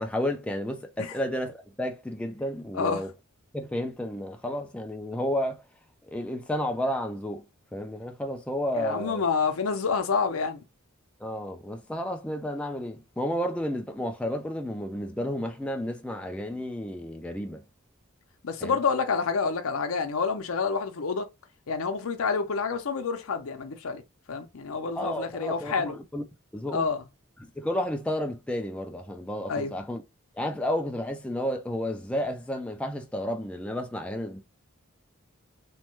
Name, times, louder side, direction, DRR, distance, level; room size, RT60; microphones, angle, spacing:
voice 1, 0.0-3.1 3.5-5.6 6.1-7.4 7.7-9.2 11.2-17.6 18.6-18.8 25.0-26.2 26.5-26.9 27.4-30.0 30.4-34.4, equal, 5° left, 0.3 m, -31 dB
voice 2, 8.8-10.6 18.4-21.3 21.7-24.0 24.3-25.9 26.7-27.0 29.5-29.7, left 5 dB, 80° left, 0.6 m, -28 dB
3.1 x 2.2 x 2.9 m
head